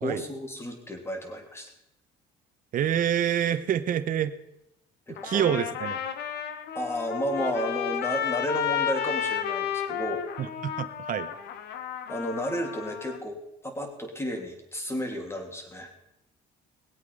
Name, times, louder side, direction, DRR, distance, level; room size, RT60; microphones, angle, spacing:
voice 1, 0.0-1.7 5.1-5.5 6.7-10.3 12.1-15.9, equal, 15° left, 3 dB, 3.1 m, -32 dB
voice 2, 2.7-4.3 5.2-6.0 10.4-11.3, right 10 dB, 55° right, 11 dB, 1.0 m, -27 dB
Trumpet, 5.2-13.2, left 9 dB, 75° left, 1.3 m, -32 dB
20.5 x 8.3 x 5.5 m, 0.86 s
cardioid pair, 110°, 17 cm